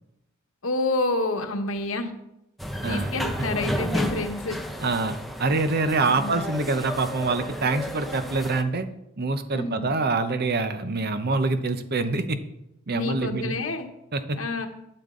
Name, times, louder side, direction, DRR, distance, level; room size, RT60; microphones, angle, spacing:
voice 1, 0.6-2.1 2.9-4.6 6.0-6.4 9.5-9.9 12.9-13.9 14.4-14.7, left 2 dB, 80° left, 5 dB, 1.3 m, -28 dB
sound 1, 2.6-8.6, equal, ahead, 0.8 m, -32 dB
voice 2, 4.8-8.9 9.2-12.4 12.9-13.5 14.1-14.4, right 3 dB, 50° right, 10 dB, 0.8 m, -25 dB
12.0 x 8.8 x 3.8 m, 0.86 s
head